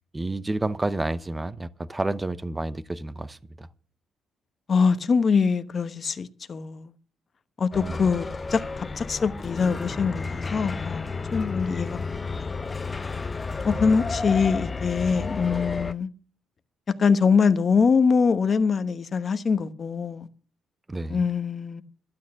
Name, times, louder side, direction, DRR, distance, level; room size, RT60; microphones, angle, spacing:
voice 1, 0.1-3.7 7.8-8.1 13.6-14.1 20.9-21.3, right 2 dB, 15° right, 0.8 m, -30 dB
voice 2, 4.7-6.9 7.6-12.5 13.6-16.1 17.0-20.3 21.1-21.8, left 5 dB, 45° left, 1.1 m, -23 dB
sound 1, 7.7-15.9, left 4 dB, 25° left, 0.6 m, -32 dB
12.0 x 8.8 x 7.1 m
cardioid pair, 90°, 0 cm